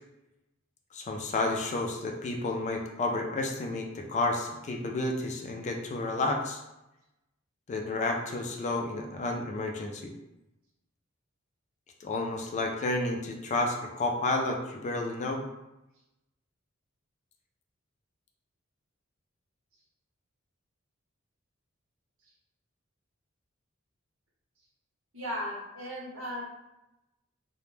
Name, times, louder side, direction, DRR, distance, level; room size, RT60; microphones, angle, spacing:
voice 1, 0.9-6.6 7.7-10.1 12.0-15.4, left 2 dB, 35° left, 2 dB, 0.3 m, -31 dB
voice 2, 25.1-26.5, equal, 80° right, -4 dB, 0.9 m, -36 dB
2.1 x 2.0 x 3.1 m, 0.94 s
head